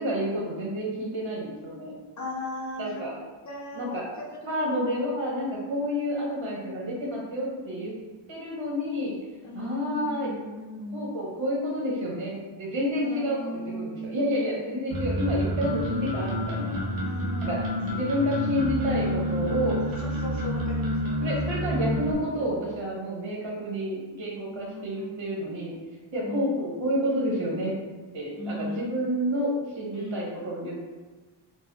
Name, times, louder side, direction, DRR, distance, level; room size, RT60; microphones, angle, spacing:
voice 1, 0.0-1.9 2.8-3.2 3.7-4.0 4.5-7.9 8.3-9.1 9.5-10.3 10.9-16.8 17.5-17.6 17.9-19.8 21.2-25.7 26.1-27.7 28.1-30.8, equal, 65° right, -4 dB, 1.2 m, -29 dB
voice 2, 2.2-3.1 3.4-4.9 6.3-6.9 9.4-11.2 13.0-14.9 17.0-17.8 19.8-22.2 24.5-25.4 26.2-26.6 28.4-29.0 29.9-30.4, equal, 35° left, -2 dB, 0.7 m, -38 dB
sound 1, 14.9-22.1, equal, 45° right, 0.9 m, -29 dB
4.2 x 2.3 x 2.3 m, 1.3 s
cardioid pair, 70°, 48 cm